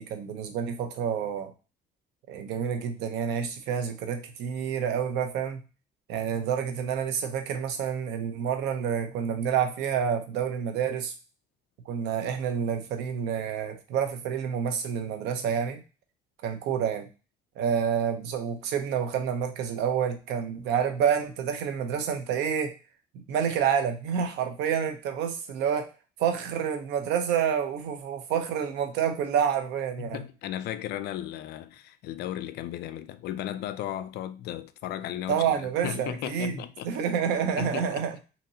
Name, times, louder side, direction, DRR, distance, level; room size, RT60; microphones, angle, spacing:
voice 1, 0.0-1.5 2.3-5.6 6.1-11.1 11.9-15.8 16.4-17.1 17.6-22.7 23.3-25.9 26.2-30.2 35.3-36.5 36.8-38.2, right 8 dB, 85° right, 0.7 m, -28 dB
voice 2, 30.0-36.9 37.6-38.0, left 12 dB, 70° left, 0.4 m, -35 dB
3.9 x 2.9 x 2.8 m
cardioid pair, 110°, 17 cm